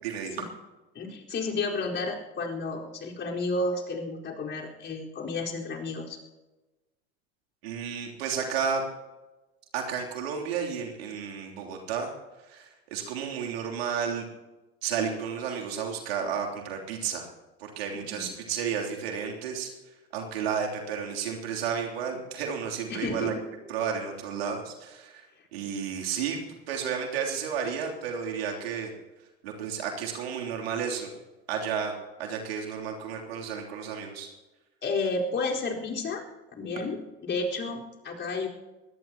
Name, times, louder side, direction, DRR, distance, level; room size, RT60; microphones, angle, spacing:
voice 1, 0.0-0.4 7.6-8.8 9.7-12.1 12.5-14.3 14.8-17.3 17.6-19.7 20.1-23.3 23.7-26.4 26.7-28.9 29.4-31.1 31.5-31.9 32.2-34.3, right 7 dB, 80° right, 1 dB, 3.3 m, -32 dB
voice 2, 0.9-6.2 17.9-18.4 22.9-23.4 34.8-36.2 36.6-38.5, left 3 dB, 40° left, -2 dB, 4.6 m, -32 dB
22.5 x 18.0 x 3.0 m, 1.1 s
hypercardioid pair, 75°, 31 cm